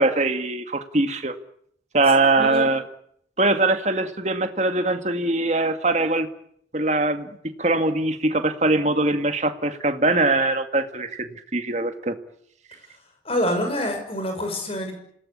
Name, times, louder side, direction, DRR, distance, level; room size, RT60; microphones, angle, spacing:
voice 1, 0.0-1.3 1.9-2.8 3.4-6.3 6.7-7.3 7.6-12.2, right 2 dB, 40° right, 7 dB, 2.0 m, -22 dB
voice 2, 2.4-2.7 13.2-14.9, equal, 35° left, 4 dB, 6.4 m, -26 dB
27.0 x 18.0 x 10.0 m, 0.71 s
head